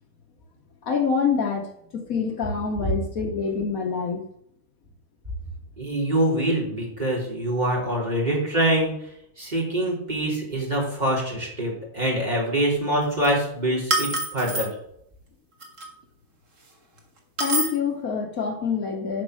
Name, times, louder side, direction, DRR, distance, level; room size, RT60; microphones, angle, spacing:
voice 1, 0.8-4.2 17.4-19.2, left 6 dB, 65° left, 3 dB, 1.5 m, -26 dB
voice 2, 5.8-8.9 9.4-14.7, right 1 dB, 30° right, -3 dB, 3.3 m, -24 dB
sound 1, 13.0-13.3 13.9-14.7 15.6-15.9 17.4-17.7, right 2 dB, 55° right, 2.0 m, -26 dB
9.7 x 5.3 x 6.3 m, 0.72 s
omnidirectional pair, 1.6 m